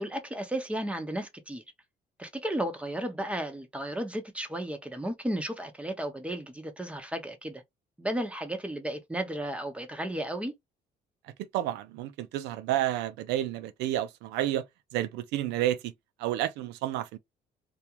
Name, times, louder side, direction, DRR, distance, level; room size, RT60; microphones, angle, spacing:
voice 1, 0.0-1.6 2.2-7.6 8.0-10.5, right 1 dB, 5° right, 0.7 m, -34 dB
voice 2, 11.5-14.6 14.9-15.9 16.2-17.2, right 13 dB, 90° right, 0.5 m, -30 dB
2.4 x 2.1 x 2.9 m
cardioid pair, 110°, 17 cm